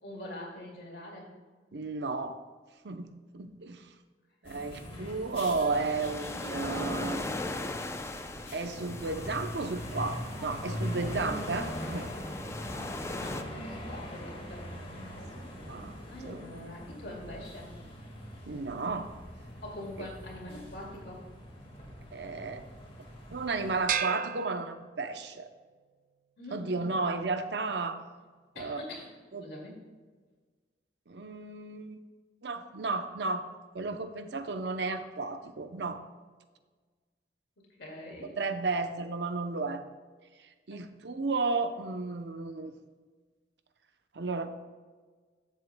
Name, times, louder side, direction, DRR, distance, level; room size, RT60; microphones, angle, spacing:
voice 1, 0.0-1.3 4.4-5.1 13.1-14.7 16.1-17.7 19.6-21.2 26.4-26.9 28.5-29.1 29.4-29.8 37.8-38.3 40.7-40.8, left 1 dB, 65° left, -2 dB, 2.3 m, -44 dB
voice 2, 1.7-2.4 2.8-3.8 4.4-7.2 8.5-12.1 15.6-16.0 16.2-16.4 18.5-19.1 22.1-22.6 23.3-25.5 26.5-28.0 28.6-28.8 29.3-29.5 31.1-32.0 32.4-33.5 33.7-36.0 38.4-39.8 40.7-42.7 44.1-44.5, right 3 dB, 75° right, 8 dB, 0.7 m, -33 dB
sound 1, 4.4-23.8, equal, 30° left, 1.7 m, -42 dB
sound 2, 5.7-13.4, left 2 dB, 15° left, 0.5 m, -39 dB
sound 3, 23.9-25.4, right 9 dB, 50° right, 0.3 m, -34 dB
13.5 x 7.3 x 2.2 m, 1.4 s
head